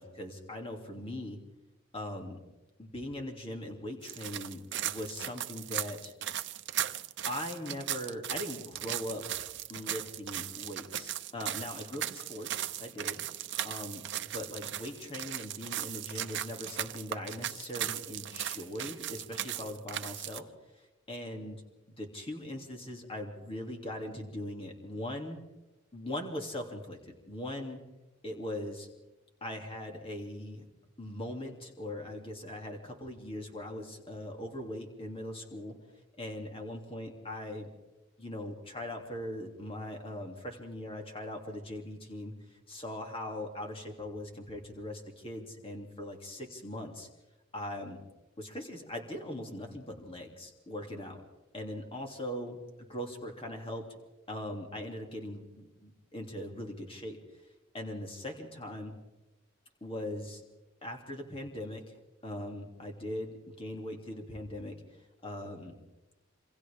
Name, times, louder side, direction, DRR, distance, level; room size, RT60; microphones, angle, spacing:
voice 1, 0.0-1.4 1.9-2.4 2.8-6.1 7.3-9.2 9.7-13.2 13.6-14.1 14.3-20.5 20.7-20.8 21.1-21.6 21.9-25.4 25.9-27.8 28.2-28.9 29.4-30.6 31.0-35.8 36.2-37.7 38.2-47.1 47.5-48.0 48.4-51.2 51.5-52.6 52.9-53.9 54.3-57.2 57.7-58.9 59.8-60.4 60.8-61.8 62.2-64.8 65.2-65.7, left 1 dB, 25° left, 2 dB, 2.8 m, -40 dB
sound 1, 4.0-20.4, right 11 dB, 55° right, 0.8 m, -37 dB
27.5 x 26.0 x 3.6 m, 1.0 s
head